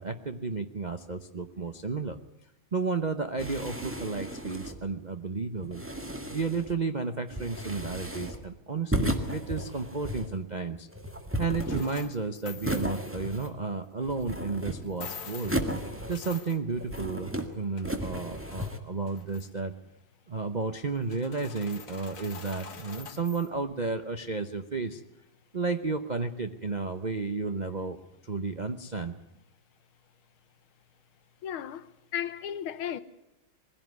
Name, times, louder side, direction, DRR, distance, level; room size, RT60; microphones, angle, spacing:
voice 1, 0.0-2.2 2.7-5.9 6.3-10.9 11.4-15.6 16.1-19.7 20.3-25.0 25.5-28.0 28.2-29.2, right 4 dB, 75° right, 0.4 m, -32 dB
sound 1, 3.4-4.9 5.6-6.8 7.3-8.5 8.9-10.4 10.9-12.1 12.6-13.7 14.0-15.0 15.4-16.4 16.7-17.5 17.8-18.8, equal, 5° right, 1.6 m, -34 dB
sound 2, 11.6-13.5 14.2-14.3 14.8-17.3 17.5-18.7 19.1-19.6 20.9-23.5, left 6 dB, 45° left, 1.8 m, -45 dB
voice 2, 31.4-33.0, left 9 dB, 85° left, 1.8 m, -35 dB
21.5 x 16.0 x 9.4 m
omnidirectional pair, 2.3 m